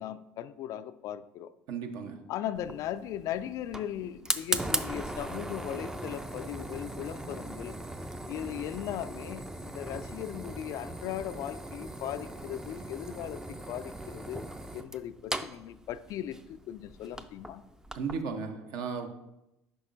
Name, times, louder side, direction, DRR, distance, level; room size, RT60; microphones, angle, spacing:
voice 1, 0.0-1.5 2.3-7.8 8.3-14.4 14.7-17.6, left 11 dB, 50° left, 13 dB, 0.3 m, -38 dB
voice 2, 1.7-2.3 17.9-19.1, right 5 dB, 60° right, 5 dB, 0.9 m, -35 dB
Fire, 2.6-18.2, right 1 dB, 5° right, 0.5 m, -38 dB
10.0 x 5.4 x 2.5 m, 0.89 s
figure-of-eight pair, 60°, 7 cm